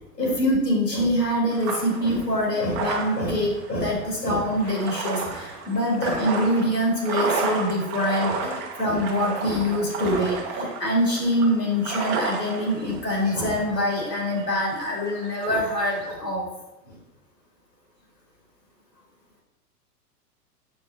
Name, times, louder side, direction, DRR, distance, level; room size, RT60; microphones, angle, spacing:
voice 1, 0.2-16.5 16.9-17.0, equal, 80° left, -2 dB, 2.1 m, -24 dB
sound 1, 1.5-16.1, right 4 dB, 20° right, 0.7 m, -33 dB
7.9 x 4.6 x 2.7 m, 0.95 s
figure-of-eight pair, 100°, 48 cm